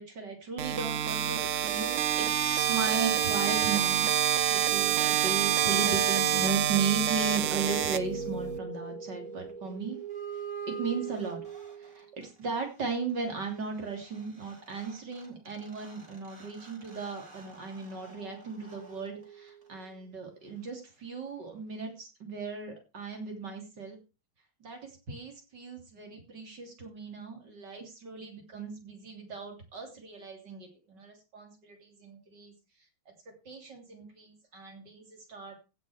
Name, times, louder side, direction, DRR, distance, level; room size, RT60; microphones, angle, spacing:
voice 1, 0.0-4.1 4.5-10.0 10.7-11.4 11.8-24.0 24.6-32.5 33.3-35.6, right 5 dB, 60° right, 3 dB, 3.8 m, -36 dB
sound 1, 0.6-8.6, right 10 dB, 85° right, 0.6 m, -27 dB
sound 2, 7.0-12.3 14.1-14.2 14.4-19.9, right 5 dB, 35° right, 3.9 m, -42 dB
16.0 x 6.3 x 5.0 m, 0.31 s
omnidirectional pair, 2.2 m